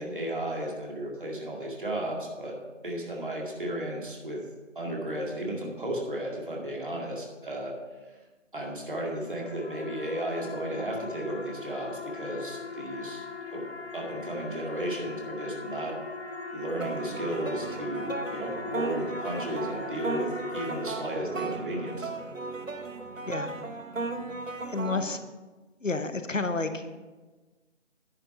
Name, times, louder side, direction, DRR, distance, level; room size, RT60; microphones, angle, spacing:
voice 1, 0.0-2.6 2.8-4.4 4.8-7.8 8.5-13.7 13.9-16.0 16.5-22.1, right 1 dB, 40° right, -1 dB, 2.1 m, -34 dB
sound 1, 9.1-21.7, left 3 dB, 55° left, 1.1 m, -40 dB
sound 2, 16.8-25.2, right 3 dB, 90° right, 1.0 m, -36 dB
voice 2, 24.7-25.3 25.8-26.9, left 3 dB, 80° left, 9 dB, 1.0 m, -30 dB
10.5 x 6.4 x 5.7 m, 1.2 s
figure-of-eight pair, 165°, 38 cm